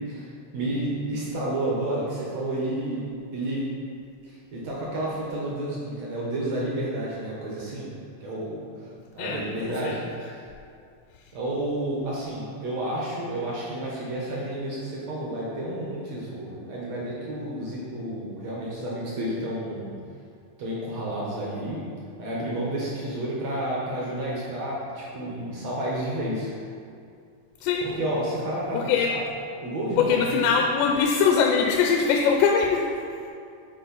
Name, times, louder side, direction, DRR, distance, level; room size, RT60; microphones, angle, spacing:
voice 1, 0.0-3.1 3.3-3.7 4.2-7.9 8.2-10.0 11.3-19.9 20.6-21.8 22.2-26.5 27.8-29.2 29.6-30.3, right 1 dB, 70° right, -5 dB, 1.6 m, -30 dB
voice 2, 9.2-10.3 27.6-27.9 28.7-29.1 30.0-33.0, left 6 dB, 85° left, 1 dB, 2.7 m, -22 dB
9.8 x 4.2 x 5.4 m, 2.4 s
omnidirectional pair, 4.9 m